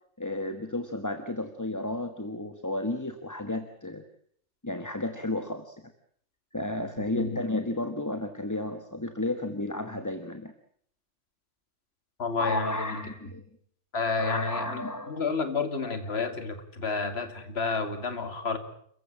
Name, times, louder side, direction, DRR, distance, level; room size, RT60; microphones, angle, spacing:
voice 1, 0.2-4.0 4.6-5.7 6.5-10.5 12.4-13.4 14.2-15.1, left 2 dB, 15° left, 8 dB, 1.3 m, -32 dB
voice 2, 7.0-7.3 12.2-13.0 13.9-18.6, left 4 dB, 50° left, 8 dB, 2.6 m, -30 dB
28.0 x 15.5 x 8.8 m, 0.64 s
omnidirectional pair, 1.4 m